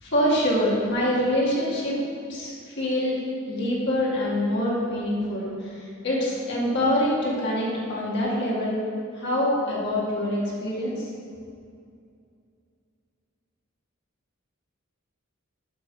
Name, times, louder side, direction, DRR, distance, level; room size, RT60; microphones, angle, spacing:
voice 1, 0.0-2.0 2.3-3.2 3.5-8.8 9.1-11.1, left 1 dB, 55° left, -5 dB, 1.9 m, -25 dB
6.5 x 5.8 x 5.5 m, 2.4 s
head